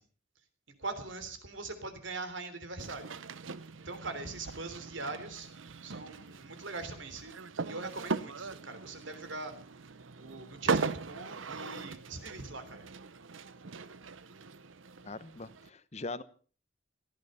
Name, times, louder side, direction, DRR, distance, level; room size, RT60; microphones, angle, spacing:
voice 1, 0.8-3.1 3.9-5.5 5.8-7.4 7.7-9.5 10.2-12.9, right 3 dB, 75° right, 9 dB, 3.4 m, -41 dB
sound 1, 2.8-15.7, right 4 dB, 90° right, 0.9 m, -39 dB
voice 2, 15.0-16.2, left 3 dB, 35° left, 14 dB, 1.0 m, -41 dB
18.0 x 14.0 x 5.6 m, 0.41 s
head